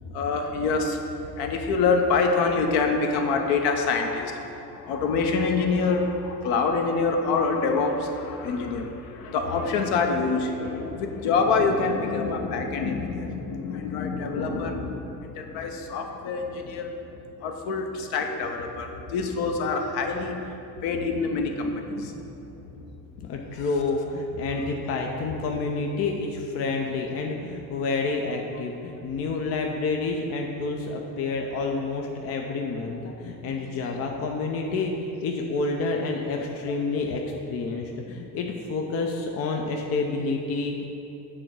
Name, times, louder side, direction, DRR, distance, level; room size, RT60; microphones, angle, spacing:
voice 1, 0.0-1.0 1.4-16.9 17.4-20.4 20.8-22.3 33.2-33.7, left 4 dB, 50° left, 4 dB, 0.9 m, -26 dB
voice 2, 23.2-37.2 37.5-40.9, left 3 dB, 30° left, 2 dB, 0.6 m, -29 dB
7.7 x 3.7 x 6.2 m, 2.8 s
figure-of-eight pair, 65°, 50 cm